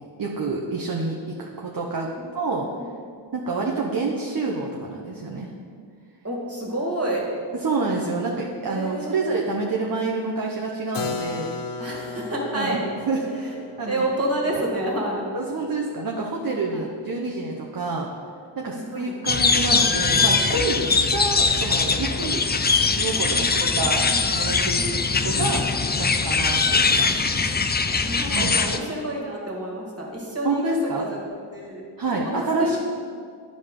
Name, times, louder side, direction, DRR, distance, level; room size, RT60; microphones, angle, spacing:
voice 1, 0.2-2.1 2.3-2.7 3.3-5.5 7.6-11.5 12.5-14.1 15.3-18.1 18.6-22.4 22.9-24.1 24.3-24.9 25.2-25.6 26.0-27.2 28.3-28.5 30.4-31.1 32.0-32.8, right 3 dB, 45° right, -1 dB, 0.8 m, -28 dB
voice 2, 6.2-7.3 8.7-9.4 11.8-12.8 13.4-13.5 13.9-15.3 16.7-16.9 18.6-19.1 20.8-20.9 23.3-23.5 23.7-25.0 27.4-31.2 31.5-31.9 32.1-32.8, right 1 dB, 30° right, -3 dB, 2.0 m, -30 dB
Keyboard (musical), 10.9-16.6, left 4 dB, 55° left, 0.7 m, -36 dB
sound 1, 19.3-28.8, left 4 dB, 25° left, 0.4 m, -21 dB
9.9 x 5.1 x 3.7 m, 2.1 s
cardioid pair, 45°, 49 cm